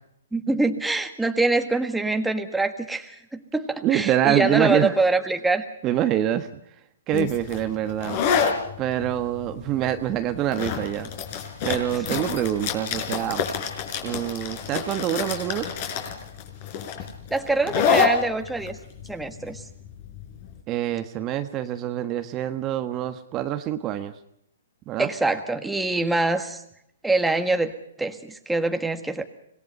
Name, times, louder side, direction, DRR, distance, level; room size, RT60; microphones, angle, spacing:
voice 1, 0.3-5.7 17.3-18.8 19.1-19.6 25.0-26.6 27.0-27.7 28.0-29.2, right 2 dB, 5° right, 6 dB, 1.7 m, -24 dB
voice 2, 3.8-4.9 5.8-6.5 7.1-8.2 8.8-11.1 11.6-13.4 14.0-15.7 20.7-24.1 24.9-25.1, right 11 dB, 30° right, 8 dB, 1.4 m, -25 dB
sound 1, 7.1-20.5, left 6 dB, 45° left, 4.9 m, -28 dB
25.5 x 19.5 x 5.5 m, 0.74 s
hypercardioid pair, 135°, 0 cm